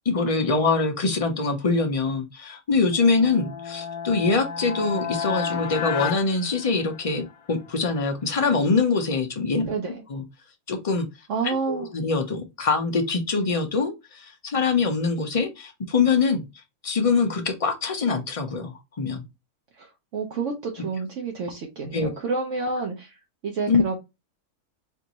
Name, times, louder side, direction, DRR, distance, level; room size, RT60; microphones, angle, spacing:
voice 1, 0.1-9.7 10.1-10.2 10.7-11.1 11.4-16.4 16.8-19.2 21.9-22.1 23.7-23.8, left 4 dB, 40° left, 0.5 m, -24 dB
sound 1, 2.9-7.3, left 6 dB, 80° left, 1.1 m, -32 dB
voice 2, 9.7-10.0 11.3-11.9 19.8-23.1 23.4-24.0, right 4 dB, 65° right, 1.0 m, -29 dB
4.4 x 2.6 x 2.9 m
omnidirectional pair, 1.5 m